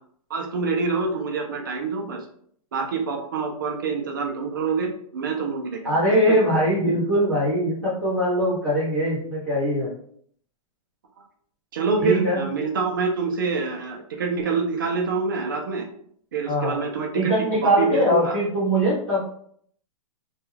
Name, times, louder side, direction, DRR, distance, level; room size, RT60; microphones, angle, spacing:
voice 1, 0.3-2.3 2.7-5.9 6.3-6.4 11.7-15.9 16.3-17.3 17.6-18.4, right 4 dB, 35° right, 3 dB, 0.4 m, -26 dB
voice 2, 5.8-9.9 12.0-12.4 16.5-16.8 17.1-19.3, equal, 10° left, -10 dB, 0.8 m, -21 dB
2.3 x 2.2 x 3.1 m, 0.62 s
hypercardioid pair, 175°, 18 cm